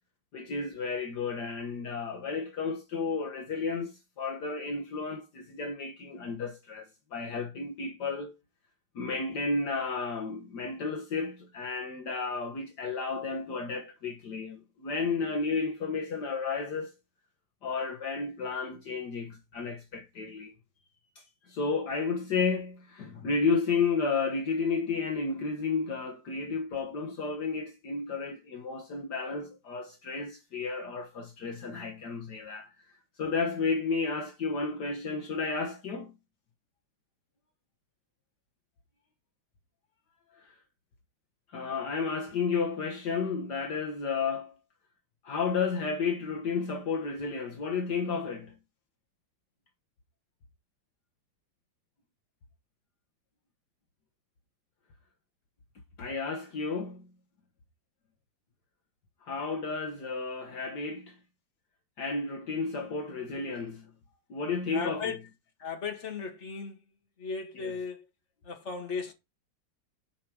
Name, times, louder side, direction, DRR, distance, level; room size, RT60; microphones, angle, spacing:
voice 1, 0.3-6.9 7.1-8.3 9.0-16.9 17.6-20.5 21.2-32.7 33.2-36.1 40.3-40.6 41.5-44.6 45.2-48.6 56.0-57.1 59.2-61.2 62.0-63.9 64.3-65.1 67.6-67.8, left 4 dB, 65° left, 1.7 m, -32 dB
voice 2, 64.7-65.2 65.6-66.8 67.2-68.1 68.4-69.1, left 5 dB, 40° left, 2.1 m, -36 dB
8.5 x 5.0 x 6.0 m
omnidirectional pair, 2.0 m